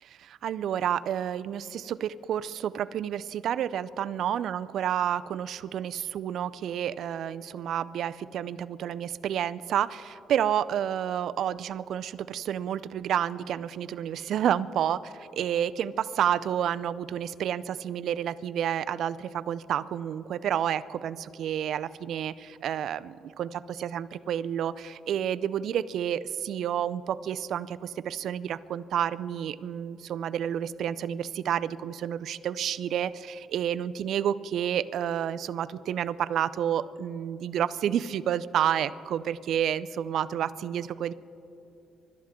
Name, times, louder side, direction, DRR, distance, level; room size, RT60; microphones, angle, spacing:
voice 1, 0.0-41.1, right 10 dB, 70° right, 15 dB, 0.4 m, -30 dB
25.0 x 12.5 x 3.7 m, 2.8 s
cardioid pair, 90°, 0 cm